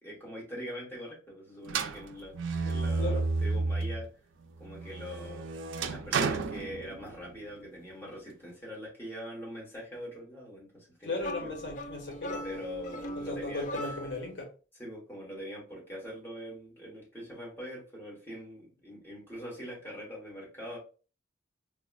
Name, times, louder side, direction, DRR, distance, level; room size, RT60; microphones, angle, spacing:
voice 1, 0.0-4.1 4.6-5.5 5.9-11.5 12.4-14.0 14.7-20.8, equal, 10° left, -5 dB, 1.2 m, -43 dB
sound 1, 1.7-4.1 4.5-7.4, right 4 dB, 75° right, 0.4 m, -32 dB
voice 2, 11.0-12.4 13.2-14.5, left 2 dB, 65° left, 1 dB, 0.9 m, -36 dB
sound 2, 11.2-14.4, equal, 40° left, 0.3 m, -40 dB
4.6 x 2.1 x 2.3 m, 0.36 s
head